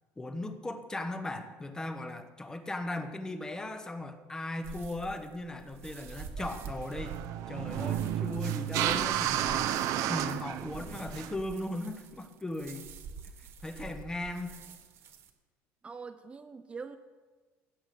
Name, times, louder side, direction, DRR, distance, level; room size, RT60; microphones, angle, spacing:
voice 1, 0.2-7.2 7.5-9.8 10.1-12.9 13.4-14.6, left 2 dB, 10° left, 9 dB, 1.0 m, -38 dB
sound 1, 4.6-15.3, right 6 dB, 45° right, 1.4 m, -47 dB
sound 2, 6.4-11.4, right 11 dB, 60° right, 0.9 m, -32 dB
voice 2, 15.8-17.0, right 5 dB, 20° right, 8 dB, 0.6 m, -43 dB
16.5 x 7.9 x 6.8 m, 1.4 s
cardioid pair, 145°, 6 cm